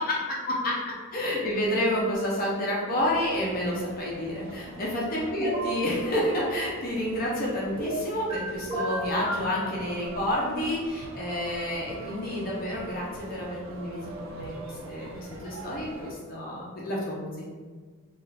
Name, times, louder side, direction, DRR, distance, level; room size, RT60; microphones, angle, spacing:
voice 1, 1.1-17.5, left 1 dB, 40° left, -4 dB, 0.5 m, -29 dB
sound 1, 2.9-16.1, right 2 dB, 60° right, 0.3 m, -44 dB
sound 2, 5.4-5.7 7.8-8.4 8.7-9.5, right 1 dB, 20° right, 0.7 m, -31 dB
2.3 x 2.3 x 3.2 m, 1.5 s
head